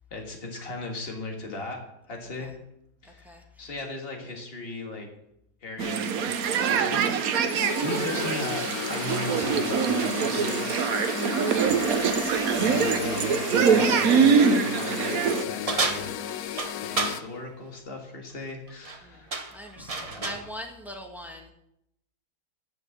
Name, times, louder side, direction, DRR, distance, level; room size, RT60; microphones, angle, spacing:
voice 1, 0.1-1.8 2.1-2.5 3.0-5.1 5.6-7.1 7.4-8.6 8.9-11.0 11.4-11.7 12.1-16.1 16.8-19.5 20.0-20.3, left 2 dB, 40° left, 2 dB, 1.9 m, -37 dB
voice 2, 3.0-3.7 11.5-13.3 15.8-16.1 19.0-21.5, equal, ahead, 2 dB, 1.1 m, -43 dB
sound 1, 5.8-15.4, right 6 dB, 70° right, 1.2 m, -24 dB
sound 2, 7.6-17.2, left 11 dB, 75° left, 1.0 m, -34 dB
sound 3, 15.7-17.2 18.7-19.0 19.3-20.5, right 3 dB, 30° right, 0.8 m, -30 dB
9.0 x 6.3 x 7.2 m, 0.79 s
omnidirectional pair, 1.7 m